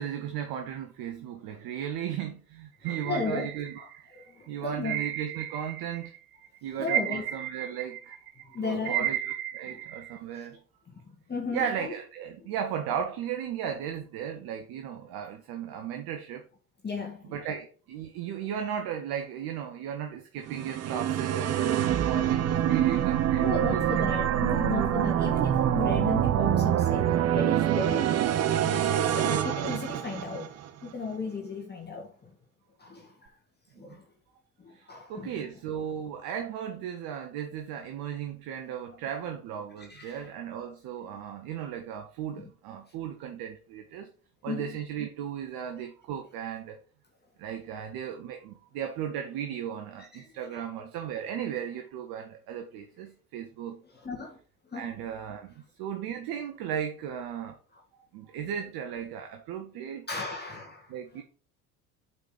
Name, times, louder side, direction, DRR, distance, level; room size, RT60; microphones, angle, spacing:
voice 1, 0.0-3.8 4.5-6.1 6.6-8.2 8.4-9.2 9.5-10.6 11.5-16.4 17.3-23.9 33.7-34.0 34.7-44.1 44.4-46.8 47.4-53.8 54.7-57.6 58.1-60.3 60.9-61.2, right 9 dB, 50° right, 1.2 m, -36 dB
voice 2, 2.8-3.5 3.8-3.9 4.1-5.0 6.8-7.2 8.4-9.1 9.6-9.8 10.3-10.5 10.9-11.9 12.4-12.5 15.7-15.8 16.8-17.4 23.4-28.3 29.1-30.6 30.8-32.3 32.8-33.4 33.8-34.1 34.6-35.5 39.2-39.3 39.8-40.3 42.4-42.5 44.5-44.8 45.7-45.8 50.1-50.7 53.9-54.4 54.6-54.9 57.7-57.8 60.1-61.2, left 4 dB, 20° left, 1.9 m, -36 dB
sound 1, 2.9-4.2 4.9-6.2 6.4-10.2, right 11 dB, 75° right, 0.7 m, -34 dB
sound 2, 20.5-30.7, right 10 dB, 35° right, 0.8 m, -25 dB
8.1 x 4.3 x 5.0 m
figure-of-eight pair, 65°, 45 cm